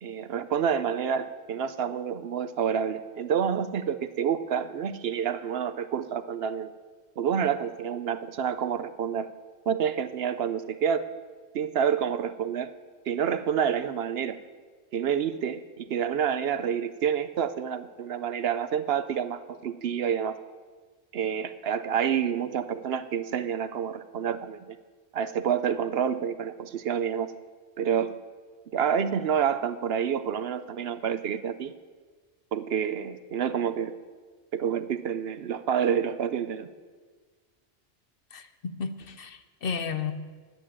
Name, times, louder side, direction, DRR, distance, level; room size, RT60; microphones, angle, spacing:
voice 1, 0.0-6.7 7.2-9.3 9.7-11.1 11.5-12.7 13.1-14.4 14.9-20.4 21.1-24.8 25.1-27.3 27.8-28.2 28.7-31.7 32.5-34.0 34.5-36.7, right 8 dB, 65° right, 13 dB, 0.8 m, -28 dB
voice 2, 38.3-40.1, left 6 dB, 55° left, 11 dB, 0.9 m, -33 dB
11.0 x 9.2 x 8.6 m, 1.5 s
omnidirectional pair, 1.2 m